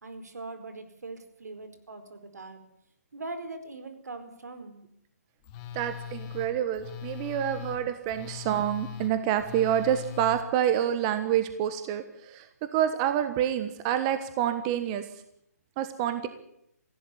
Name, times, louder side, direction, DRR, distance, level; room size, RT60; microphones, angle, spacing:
voice 1, 0.0-2.6 3.1-4.8, right 2 dB, 80° right, 9 dB, 4.5 m, -41 dB
Telephone, 5.4-10.4, left 9 dB, 25° left, 2.1 m, -40 dB
voice 2, 5.7-12.5 12.7-15.0 15.8-16.3, right 10 dB, 25° right, 10 dB, 1.3 m, -27 dB
18.5 x 16.0 x 9.8 m, 0.75 s
hypercardioid pair, 155°, 9 cm